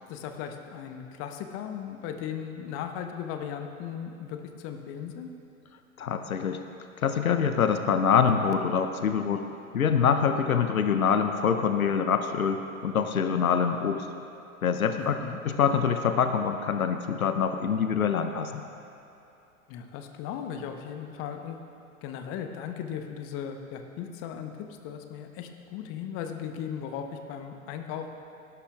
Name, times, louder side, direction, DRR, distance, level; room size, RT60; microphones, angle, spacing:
voice 1, 0.1-5.3 15.0-15.4 19.7-21.6 22.0-28.1, left 8 dB, 30° left, 6 dB, 0.8 m, -37 dB
voice 2, 6.0-6.6 7.0-9.4 9.7-14.1 14.6-15.2 15.5-18.6, left 7 dB, 80° left, 7 dB, 0.7 m, -25 dB
18.0 x 11.0 x 2.3 m, 2.8 s
figure-of-eight pair, 95°, 43 cm